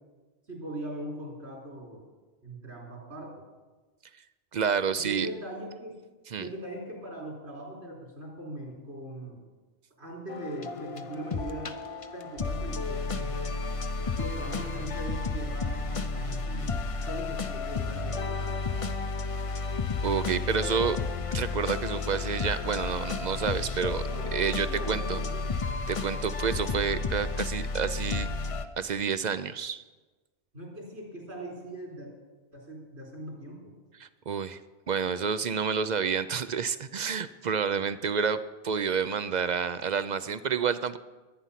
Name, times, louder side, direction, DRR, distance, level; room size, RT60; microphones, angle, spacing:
voice 1, 0.5-2.0 2.4-3.3 5.0-6.0 6.4-9.4 10.0-11.7 12.1-13.4 14.0-18.6 24.0-25.3 26.5-26.8 30.5-32.1 32.5-33.7, right 1 dB, 75° right, -1 dB, 4.6 m, -40 dB
voice 2, 4.5-5.3 6.3-6.5 20.0-21.0 21.3-24.0 24.3-25.2 25.9-28.3 28.8-29.8 34.0-34.6 34.9-38.4 38.6-41.0, right 6 dB, 50° right, 13 dB, 0.6 m, -29 dB
sound 1, 10.3-28.7, left 4 dB, 35° left, 0.7 m, -32 dB
22.5 x 9.5 x 5.8 m, 1.3 s
omnidirectional pair, 1.1 m